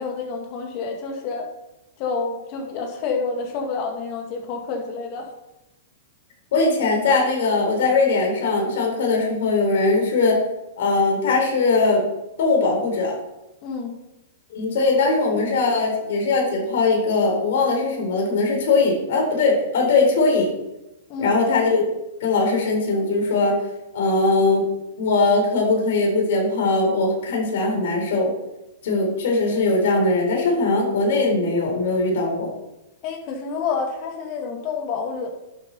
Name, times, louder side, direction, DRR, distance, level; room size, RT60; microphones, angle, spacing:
voice 1, 0.0-1.5 2.0-5.3 13.6-14.0 21.1-21.4 33.0-35.3, left 4 dB, 45° left, 3 dB, 2.2 m, -28 dB
voice 2, 6.5-10.4 10.8-12.0 12.4-13.1 14.5-20.5 21.2-21.8 22.2-23.6 23.9-24.7 25.0-28.3 28.8-32.5, left 3 dB, 65° left, 0 dB, 3.9 m, -20 dB
11.0 x 7.6 x 4.1 m, 0.94 s
hypercardioid pair, 130°, 0 cm